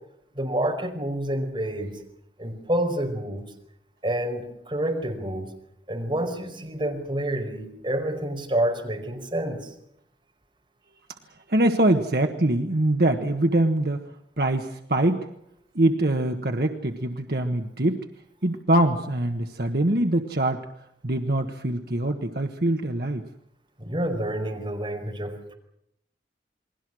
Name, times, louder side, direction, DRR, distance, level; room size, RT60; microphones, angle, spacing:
voice 1, 0.3-1.9 2.4-3.4 4.0-5.5 5.9-9.6 23.8-25.5, right 1 dB, 30° right, 1 dB, 5.1 m, -28 dB
voice 2, 11.5-14.0 14.4-15.3 15.7-18.0 18.4-20.6 21.0-23.2, right 1 dB, 60° right, 4 dB, 1.4 m, -23 dB
29.0 x 21.5 x 6.3 m, 0.77 s
head